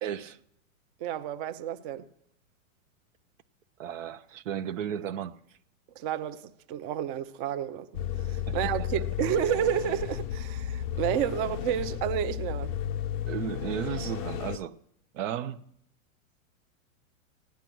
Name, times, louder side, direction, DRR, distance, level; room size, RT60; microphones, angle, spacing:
voice 1, 0.0-0.4 3.8-5.6 8.5-9.0 13.2-14.8 15.1-15.6, right 9 dB, 65° right, 0.8 m, -34 dB
voice 2, 1.0-2.0 6.0-6.4 6.7-7.9 8.3-12.7, right 10 dB, 40° right, 0.8 m, -30 dB
sound 1, 7.9-14.6, left 10 dB, 40° left, 0.4 m, -33 dB
16.0 x 10.5 x 6.1 m
supercardioid pair, 140°, 41 cm